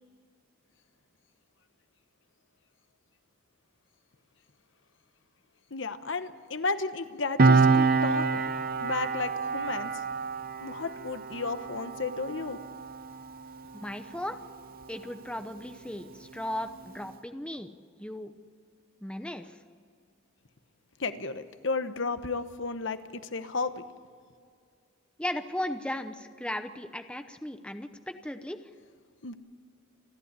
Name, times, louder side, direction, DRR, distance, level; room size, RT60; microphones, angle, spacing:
voice 1, 5.7-8.4 8.8-10.0 10.6-12.6 21.0-23.8 29.2-29.3, left 3 dB, 65° left, 10 dB, 1.0 m, -33 dB
Piano, 7.4-14.4 14.7-14.9, right 4 dB, 45° right, 0.8 m, -27 dB
voice 2, 13.7-14.4 14.9-17.7 18.0-18.3 19.0-19.6 25.2-28.6, left 1 dB, 5° left, 8 dB, 0.8 m, -36 dB
28.5 x 11.5 x 9.7 m, 2.1 s
head